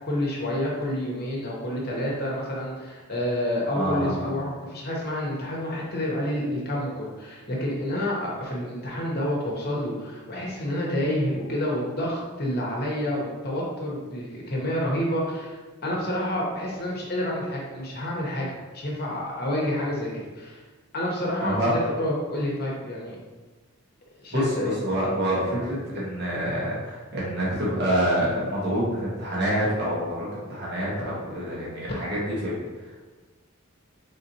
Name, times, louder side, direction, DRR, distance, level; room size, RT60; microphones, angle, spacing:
voice 1, 0.0-20.1 20.3-20.6 20.9-23.2 24.2-24.7, left 1 dB, 50° left, -4 dB, 0.9 m, -29 dB
voice 2, 3.7-4.3 21.4-21.8 24.3-33.0, equal, 55° right, -6 dB, 1.3 m, -27 dB
4.0 x 3.6 x 2.8 m, 1.3 s
head